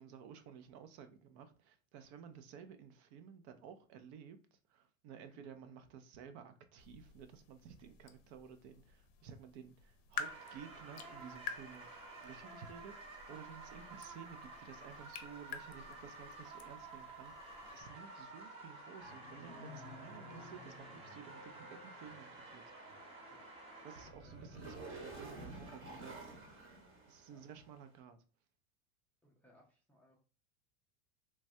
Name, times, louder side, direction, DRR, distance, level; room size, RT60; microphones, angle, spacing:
voice 1, 0.0-11.9 12.2-23.0 23.8-24.8 25.0-26.5 27.1-28.2, right 7 dB, 60° right, 0.6 m, -54 dB
sound 1, 6.8-17.8, left 7 dB, 55° left, 0.6 m, -50 dB
sound 2, 10.2-24.1, right 3 dB, 15° right, 0.7 m, -52 dB
voice 2, 15.7-16.0 23.3-24.4 24.6-24.8 27.3-27.4 29.2-30.2, left 1 dB, 5° left, 0.3 m, -68 dB
sound 3, 19.0-27.7, right 1 dB, 35° right, 1.1 m, -52 dB
3.2 x 2.2 x 2.6 m
supercardioid pair, 125°, 39 cm